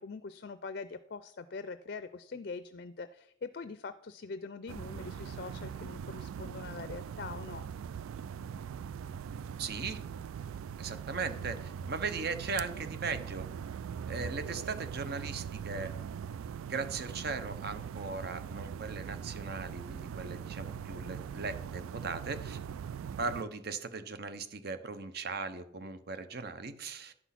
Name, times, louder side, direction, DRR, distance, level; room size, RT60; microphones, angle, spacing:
voice 1, 0.0-7.6, left 4 dB, 50° left, 12 dB, 0.4 m, -43 dB
sound 1, 4.7-23.4, right 7 dB, 85° right, 0.3 m, -41 dB
voice 2, 9.6-10.0 10.8-13.5 14.1-15.9 16.7-22.6 23.2-27.1, right 4 dB, 50° right, 11 dB, 0.8 m, -38 dB
11.0 x 6.2 x 5.8 m, 0.70 s
head